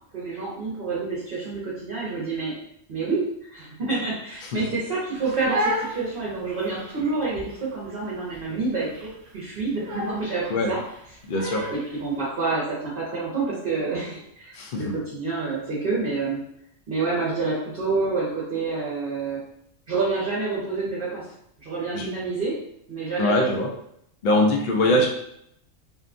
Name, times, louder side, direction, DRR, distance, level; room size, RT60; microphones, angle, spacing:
voice 1, 0.1-2.6 2.9-3.2 3.5-9.1 9.3-10.8 11.7-16.4 16.9-19.4 19.9-21.2 21.6-22.6 22.9-23.6 24.8-25.1, right 3 dB, 50° right, -8 dB, 0.8 m, -28 dB
Crying sobbing, 5.1-12.0, equal, 70° right, 0.5 m, -33 dB
voice 2, 11.3-11.7 14.5-14.9 21.9-22.1 23.2-23.7 24.2-25.1, left 1 dB, 60° left, 0 dB, 0.5 m, -22 dB
2.7 x 2.2 x 2.5 m, 0.72 s
omnidirectional pair, 1.4 m